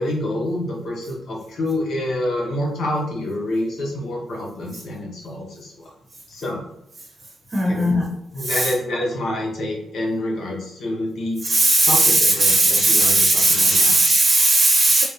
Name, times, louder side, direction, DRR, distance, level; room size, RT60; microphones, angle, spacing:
voice 1, 0.0-5.9 6.3-6.6 7.6-11.4 11.9-14.0, left 1 dB, 60° left, -2 dB, 1.1 m, -27 dB
voice 2, 7.5-8.1 8.4-8.7 11.4-15.0, right 2 dB, 30° right, -1 dB, 0.8 m, -17 dB
3.4 x 2.7 x 2.7 m, 0.81 s
cardioid pair, 120°, 0 cm